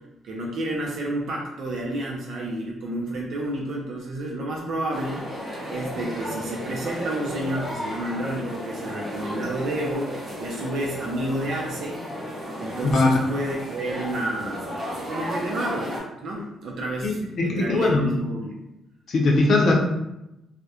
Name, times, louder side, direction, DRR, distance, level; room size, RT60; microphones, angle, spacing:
voice 1, 0.2-5.2 5.7-12.0 12.6-14.8 15.1-18.6, right 1 dB, 70° right, -2 dB, 0.4 m, -30 dB
sound 1, 4.9-16.0, equal, 30° right, 1.0 m, -34 dB
voice 2, 17.0-18.1 19.1-19.7, left 2 dB, 60° left, 0 dB, 0.6 m, -20 dB
2.3 x 2.1 x 2.8 m, 0.90 s
cardioid pair, 90°, 0 cm